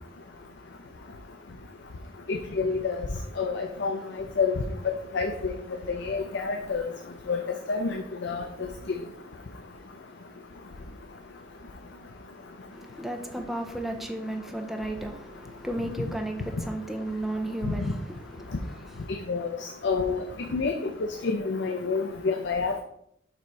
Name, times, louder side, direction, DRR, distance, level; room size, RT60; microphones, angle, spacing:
voice 1, 2.3-3.1 3.4-4.0 4.4-4.5 5.1-5.5 6.0-6.8 7.3-7.4 7.7-8.5 19.3-19.5 19.8-20.2 20.5-20.7 21.2-22.8, left 4 dB, 65° left, 0.5 m, -28 dB
voice 2, 12.7-19.0, right 1 dB, ahead, 0.6 m, -34 dB
6.8 x 3.1 x 4.6 m
head